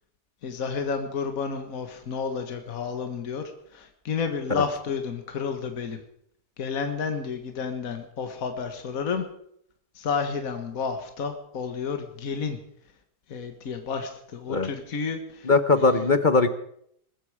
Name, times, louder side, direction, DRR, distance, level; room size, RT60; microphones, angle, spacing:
voice 1, 0.4-6.0 6.6-9.3 10.0-12.6 13.3-15.5 15.8-16.1, left 5 dB, 60° left, 6 dB, 1.9 m, -31 dB
voice 2, 15.4-16.5, left 3 dB, 40° left, 11 dB, 0.8 m, -20 dB
21.0 x 14.0 x 4.9 m, 0.68 s
omnidirectional pair, 1.7 m